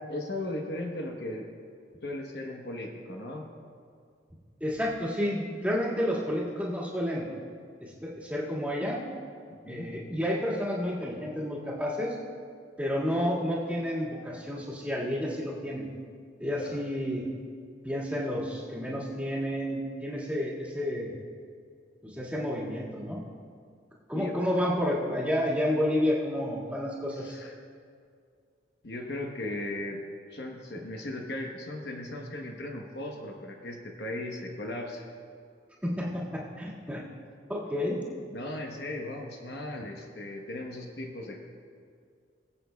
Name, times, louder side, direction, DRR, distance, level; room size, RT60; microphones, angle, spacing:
voice 1, 0.1-1.5 2.0-3.5 9.6-9.9 16.6-16.8 24.1-24.4 27.2-27.5 28.8-30.0 30.3-35.0 38.3-41.4, left 1 dB, 60° left, 1 dB, 0.9 m, -37 dB
voice 2, 4.6-7.3 7.8-9.0 9.7-12.2 12.8-15.9 16.4-17.2 17.8-21.1 22.0-23.2 24.1-27.4 35.8-37.0 37.5-38.0, equal, 10° right, -7 dB, 1.8 m, -30 dB
22.5 x 8.2 x 2.3 m, 2.2 s
head